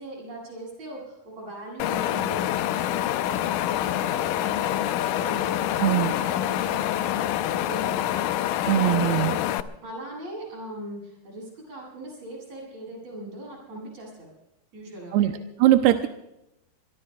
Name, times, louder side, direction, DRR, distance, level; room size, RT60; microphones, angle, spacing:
voice 1, 0.0-9.0 9.8-14.3 14.7-15.4, right 1 dB, 45° right, -2 dB, 8.7 m, -40 dB
Wind, 1.8-9.6, left 12 dB, 90° left, 1.8 m, -26 dB
voice 2, 5.8-6.1 8.7-9.4 15.1-15.3 15.6-16.1, right 13 dB, 90° right, 7 dB, 2.7 m, -20 dB
24.5 x 23.0 x 2.3 m, 0.87 s
omnidirectional pair, 4.5 m